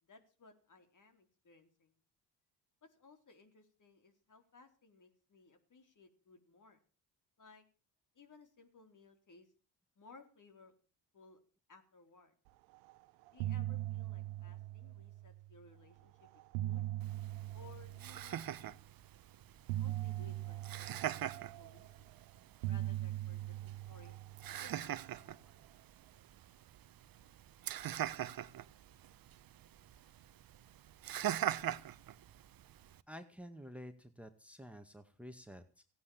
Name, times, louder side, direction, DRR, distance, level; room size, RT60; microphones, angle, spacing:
voice 1, 0.0-2.0 2.8-6.8 7.4-7.6 8.1-9.5 10.0-10.7 11.1-11.4 11.7-12.3 13.3-16.9 17.5-18.4 19.8-22.1 22.7-24.2 24.5-25.6, left 4 dB, 45° left, 7 dB, 4.1 m, -61 dB
sound 1, 12.7-13.0 13.2-15.6 16.2-18.7 19.7-22.1 22.6-25.2, right 15 dB, 90° right, 0.9 m, -41 dB
Laughter, 17.0-33.0, right 11 dB, 55° right, 1.0 m, -43 dB
voice 2, 33.1-35.8, equal, 5° right, 9 dB, 1.9 m, -51 dB
17.0 x 9.5 x 7.2 m, 0.39 s
supercardioid pair, 60°, 43 cm